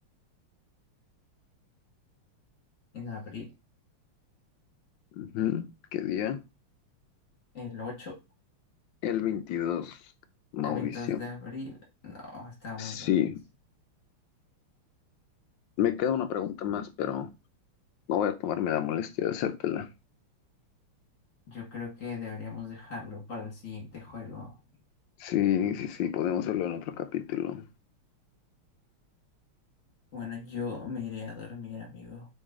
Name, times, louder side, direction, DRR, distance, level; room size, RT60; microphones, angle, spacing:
voice 1, 2.9-3.5 7.5-8.2 10.6-13.1 21.5-24.6 30.1-32.3, left 5 dB, 40° left, 1.8 m, -39 dB
voice 2, 5.2-6.4 9.0-10.0 10.5-11.2 12.8-13.4 15.8-17.3 18.1-19.9 25.2-27.6, left 10 dB, 75° left, 1.1 m, -29 dB
3.9 x 3.2 x 3.5 m
omnidirectional pair, 2.4 m